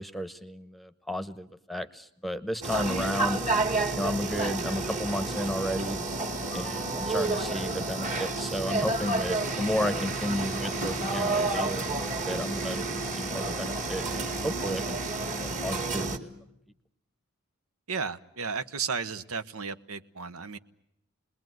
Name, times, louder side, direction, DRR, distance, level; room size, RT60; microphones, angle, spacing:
voice 1, 0.0-3.4 3.9-6.0 6.5-12.0 12.3-16.3, equal, ahead, 12 dB, 1.0 m, -33 dB
sound 1, 2.6-16.2, right 3 dB, 35° right, 2.1 m, -30 dB
voice 2, 17.9-20.6, right 5 dB, 85° right, 12 dB, 1.1 m, -34 dB
29.0 x 21.0 x 9.3 m, 0.83 s
head